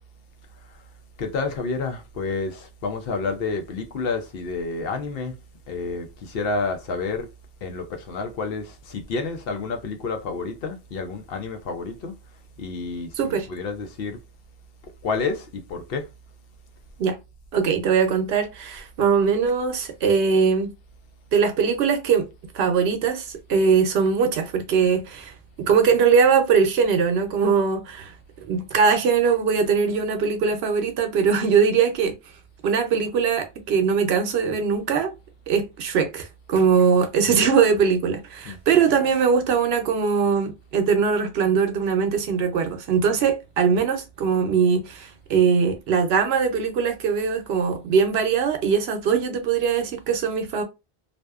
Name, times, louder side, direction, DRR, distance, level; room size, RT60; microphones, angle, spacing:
voice 1, 1.2-5.4 5.7-7.3 7.6-12.1 12.6-14.2 15.0-16.0 37.3-37.4 38.4-38.6, left 4 dB, 70° left, 0.8 m, -29 dB
voice 2, 13.2-13.5 17.0-17.2 17.5-20.7 21.3-22.3 22.5-25.3 25.6-28.1 28.5-32.1 32.6-35.1 35.5-50.6, right 6 dB, 80° right, 0.8 m, -21 dB
2.5 x 2.1 x 2.2 m
omnidirectional pair, 1.0 m